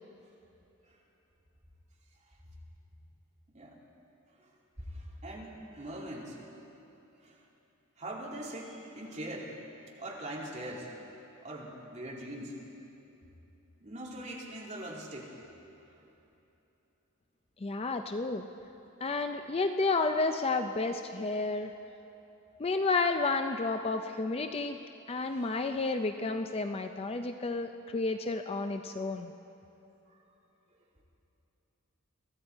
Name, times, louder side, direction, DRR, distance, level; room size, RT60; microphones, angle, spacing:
voice 1, 4.8-6.4 7.2-7.4 8.0-9.5 10.0-10.9 11.4-12.6 13.8-15.3 25.3-25.6 30.1-30.2, right 1 dB, 35° right, -3 dB, 2.5 m, -42 dB
voice 2, 17.6-18.5 19.0-21.7 22.6-24.8 25.1-29.3, left 3 dB, 25° left, 7 dB, 0.4 m, -31 dB
22.5 x 14.0 x 4.5 m, 3.0 s
head